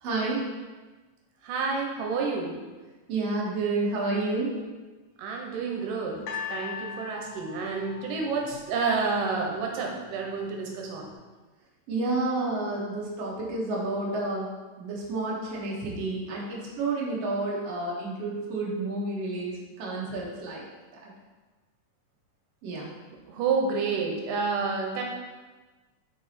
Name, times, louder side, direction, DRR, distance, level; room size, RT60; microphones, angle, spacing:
voice 1, 0.0-0.4 3.1-4.5 11.9-14.5 14.8-20.6 21.0-21.1 22.6-22.9, right 2 dB, 60° right, -4 dB, 2.1 m, -30 dB
voice 2, 1.4-2.5 5.2-6.2 6.5-11.1 23.3-25.0, right 4 dB, 90° right, 0 dB, 2.4 m, -29 dB
sound 1, 6.3-9.4 10.2-10.3, left 6 dB, 70° left, 1.8 m, -39 dB
5.4 x 4.8 x 4.2 m, 1.3 s
omnidirectional pair, 3.8 m